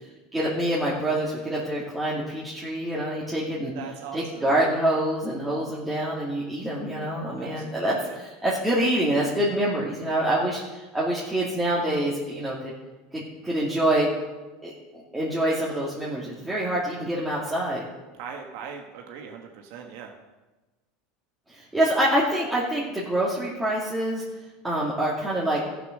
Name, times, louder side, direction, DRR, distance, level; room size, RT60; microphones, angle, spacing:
voice 1, 0.3-3.7 4.1-12.7 13.1-14.1 14.6-17.8 21.5-24.2 24.6-25.6, right 1 dB, 10° right, -7 dB, 2.4 m, -26 dB
voice 2, 3.7-4.5 7.4-8.2 18.2-20.1, right 6 dB, 70° right, 2 dB, 1.4 m, -40 dB
14.0 x 6.8 x 6.5 m, 1.2 s
supercardioid pair, 115°, 0 cm